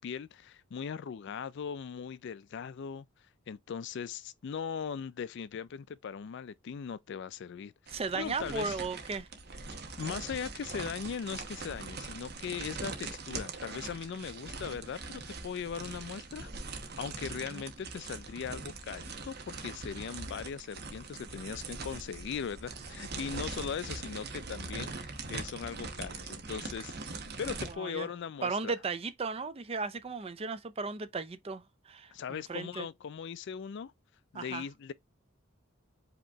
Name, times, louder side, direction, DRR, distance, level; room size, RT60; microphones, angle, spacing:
voice 1, 0.0-3.1 3.5-8.8 10.0-28.7 32.1-33.9 34.3-34.9, left 7 dB, 55° left, 0.3 m, -39 dB
voice 2, 7.9-9.3 17.5-17.6 27.6-28.1 28.4-32.9 34.3-34.7, right 4 dB, 30° right, 0.4 m, -36 dB
sound 1, 7.9-27.7, right 4 dB, 50° right, 1.0 m, -42 dB
5.1 x 2.9 x 3.4 m
head